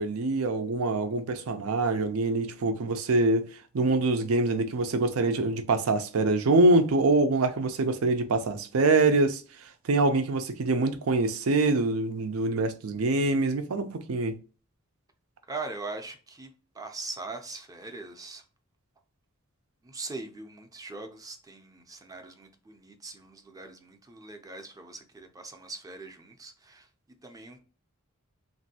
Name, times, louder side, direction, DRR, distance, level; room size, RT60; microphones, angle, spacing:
voice 1, 0.0-3.5 3.7-9.4 9.8-14.4, right 2 dB, 90° right, 0.5 m, -25 dB
voice 2, 15.5-16.5 16.7-18.4 19.8-26.9 27.2-27.6, right 3 dB, 15° right, 0.4 m, -41 dB
3.1 x 2.6 x 2.7 m
head